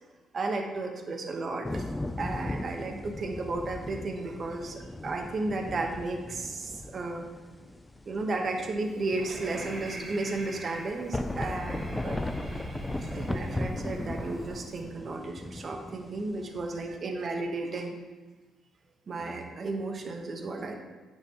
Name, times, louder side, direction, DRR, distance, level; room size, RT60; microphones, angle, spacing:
voice 1, 0.3-1.8 2.2-7.3 8.0-12.2 13.0-18.0 19.1-20.8, right 3 dB, 45° right, 3 dB, 1.1 m, -33 dB
sound 1, 1.6-17.0, left 2 dB, 15° left, 0.3 m, -38 dB
Breathing, 8.8-14.8, right 1 dB, 25° right, 1.4 m, -41 dB
9.2 x 5.9 x 2.9 m, 1.3 s
cardioid pair, 90°, 0 cm